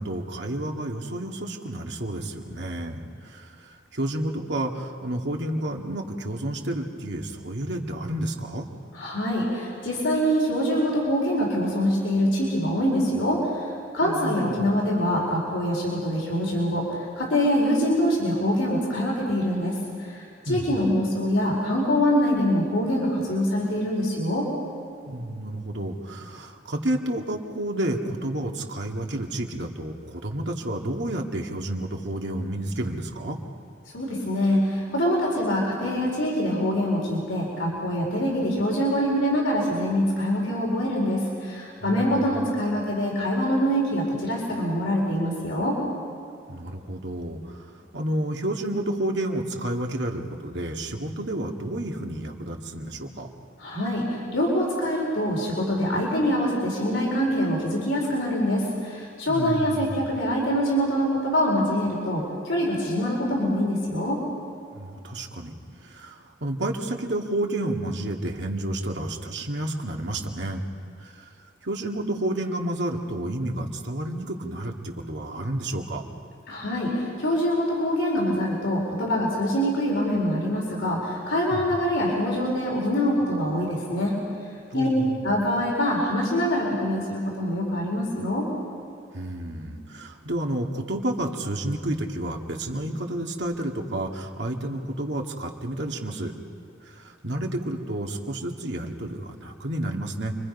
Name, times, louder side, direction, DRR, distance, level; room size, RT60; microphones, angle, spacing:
voice 1, 0.0-8.7 14.0-14.7 20.5-20.7 25.1-33.4 41.8-42.3 46.5-53.3 59.3-60.1 64.7-65.5 65.8-70.6 71.0-71.3 71.6-76.0 81.5-81.7 84.7-85.2 89.1-96.3 96.9-100.4, right 1 dB, 65° right, 1 dB, 2.0 m, -30 dB
voice 2, 8.9-13.7 13.9-24.5 33.9-45.8 53.6-64.2 76.5-84.1 84.7-84.9 85.2-88.5, equal, 85° left, -3 dB, 4.5 m, -24 dB
29.0 x 23.0 x 5.4 m, 2.4 s
head